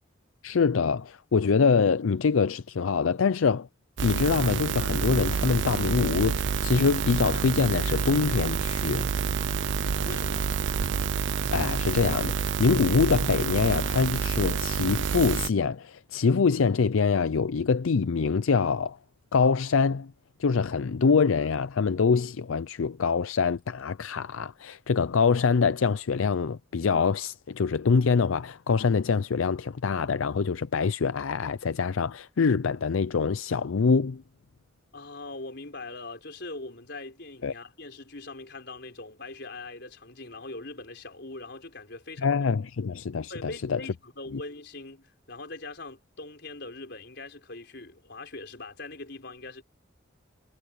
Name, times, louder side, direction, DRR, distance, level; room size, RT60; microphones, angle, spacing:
voice 1, 0.4-3.7 4.0-9.1 11.5-19.0 19.3-20.1 20.4-34.2 37.4-37.5 42.2-43.8 44.3-44.4, left 5 dB, 80° left, 0.5 m, -25 dB
sound 1, 4.0-15.5, right 6 dB, 60° right, 0.5 m, -28 dB
voice 2, 10.0-10.5 34.9-42.4 43.3-49.6, left 2 dB, 55° left, 4.8 m, -41 dB
head